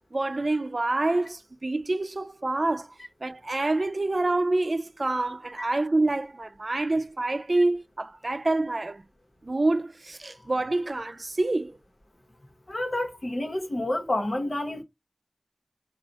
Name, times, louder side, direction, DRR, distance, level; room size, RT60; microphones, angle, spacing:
voice 1, 0.1-2.9 3.2-9.0 9.4-11.8, right 2 dB, 65° right, 0.4 m, -27 dB
voice 2, 12.7-14.8, left 1 dB, 70° left, 1.2 m, -29 dB
4.1 x 2.4 x 4.5 m
wide cardioid pair, 45°, 0 cm